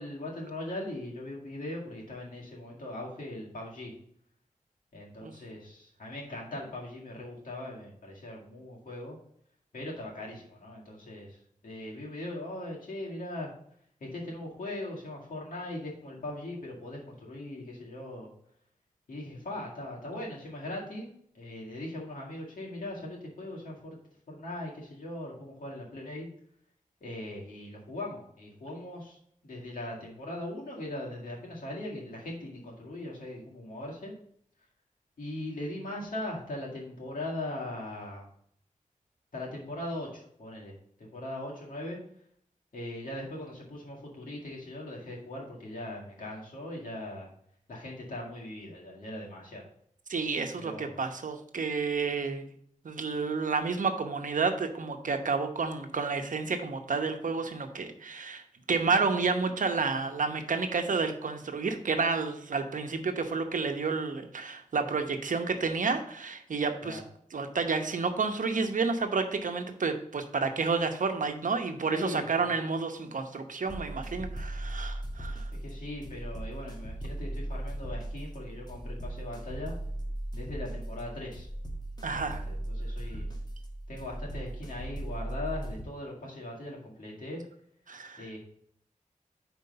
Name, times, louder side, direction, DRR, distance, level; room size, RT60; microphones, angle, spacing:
voice 1, 0.0-3.9 4.9-9.2 9.7-11.4 11.6-13.5 14.0-18.3 19.1-21.1 21.3-24.0 24.3-26.3 27.0-29.2 29.4-34.1 35.2-38.3 39.3-40.7 41.0-42.0 42.7-47.3 47.7-49.6 50.6-51.0 66.8-67.0 71.9-72.5 75.5-79.8 80.3-81.5 82.2-83.3 83.9-87.4 88.2-88.4, left 1 dB, 85° left, -3 dB, 2.1 m, -40 dB
voice 2, 50.1-52.5 52.8-67.0 67.3-75.5 82.0-82.4 87.9-88.3, right 4 dB, 70° right, 6 dB, 0.9 m, -30 dB
sound 1, 73.7-85.8, right 1 dB, 30° left, 1.5 m, -38 dB
5.3 x 4.5 x 5.7 m, 0.66 s
cardioid pair, 60°, 14 cm